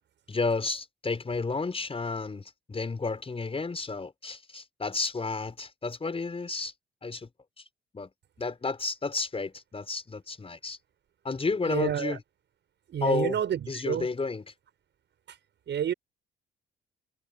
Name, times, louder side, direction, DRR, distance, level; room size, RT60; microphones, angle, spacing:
voice 1, 0.3-6.7 7.0-7.3 7.9-8.1 8.4-10.8 11.2-12.2 13.0-13.4 13.7-14.5, left 4 dB, 30° left, 5.3 m, -31 dB
voice 2, 11.7-12.2 12.9-14.1 15.7-15.9, right 9 dB, 65° right, 7.5 m, -29 dB
cardioid pair, 90°, 20 cm